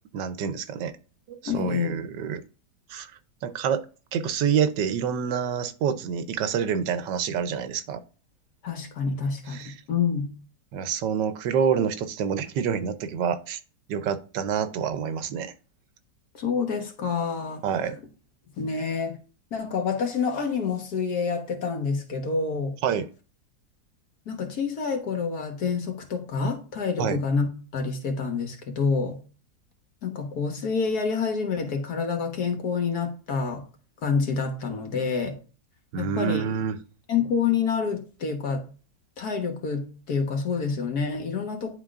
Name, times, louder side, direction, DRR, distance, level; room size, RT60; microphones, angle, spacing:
voice 1, 0.1-0.9 1.3-2.4 2.9-3.1 3.4-3.8 4.1-8.0 9.5-9.7 10.7-13.6 13.9-15.5 17.6-18.0 22.8-23.1 27.0-27.2 35.9-36.8, right 7 dB, 90° right, 1.4 m, -27 dB
voice 2, 1.5-2.0 8.6-10.3 16.3-18.0 18.6-19.2 19.5-22.8 24.3-29.2 30.0-33.7 34.0-35.4 36.0-36.5 37.1-38.7 39.2-41.8, left 5 dB, 60° left, 1.7 m, -28 dB
11.0 x 3.9 x 2.4 m
omnidirectional pair, 1.9 m